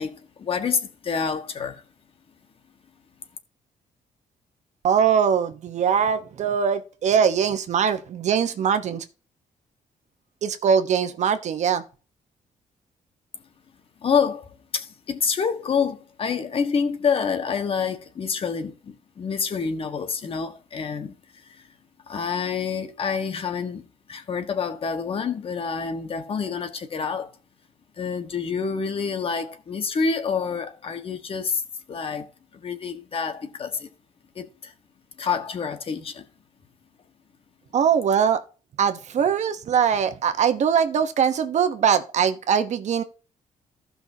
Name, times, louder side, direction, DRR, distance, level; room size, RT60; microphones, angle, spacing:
voice 1, 0.0-1.8 14.0-21.7 22.1-27.3 28.0-31.6 31.9-33.9 34.3-34.7 35.2-36.2, left 6 dB, 40° left, 1.5 m, -27 dB
voice 2, 4.8-9.0 10.4-11.8 37.7-38.4 38.8-43.0, right 7 dB, 55° right, 1.1 m, -22 dB
15.5 x 5.7 x 2.8 m
cardioid pair, 150°, 14 cm